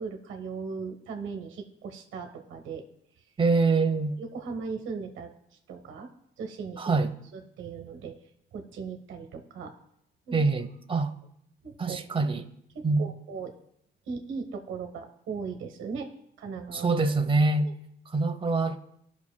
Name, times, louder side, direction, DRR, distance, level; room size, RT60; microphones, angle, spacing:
voice 1, 0.0-2.8 4.2-6.1 6.4-6.9 7.3-8.1 8.5-9.7 10.3-10.4 11.6-12.3 12.7-13.5 14.1-16.1 16.4-16.9 17.6-17.7, right 5 dB, 75° right, 1.1 m, -38 dB
voice 2, 3.4-4.2 6.8-7.1 10.3-11.1 11.8-12.5 12.8-13.0 16.7-17.7 18.1-18.8, right 3 dB, 25° right, 0.8 m, -25 dB
16.5 x 6.0 x 2.2 m
cardioid pair, 90°, 20 cm